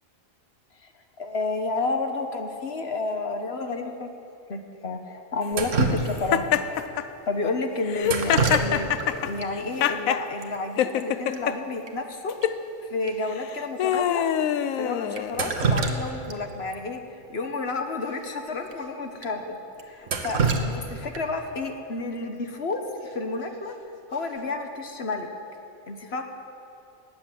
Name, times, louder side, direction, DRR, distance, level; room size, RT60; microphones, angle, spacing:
voice 1, 1.2-4.1 4.5-6.6 7.3-12.4 12.8-14.3 14.7-23.7 24.1-25.3 25.9-26.2, left 3 dB, 50° left, 5 dB, 1.2 m, -31 dB
Drip, 5.5-6.5 8.0-9.1 9.4-9.5 10.4-10.5 10.8-11.0 11.3-11.4 11.9-12.0 12.4-12.5 13.1-13.2 13.9-14.0 15.1-16.4 16.7-16.8 18.1-18.2 18.7-18.8 19.2-19.3 19.8-21.4 23.4-23.7 24.1-24.5, right 4 dB, 65° right, 1.4 m, -27 dB
Laughter, 6.3-7.0 7.9-10.2 10.8-11.5 12.3-12.6 13.3-15.5, left 10 dB, 80° left, 1.0 m, -25 dB
19.0 x 8.6 x 7.5 m, 2.8 s
omnidirectional pair, 1.4 m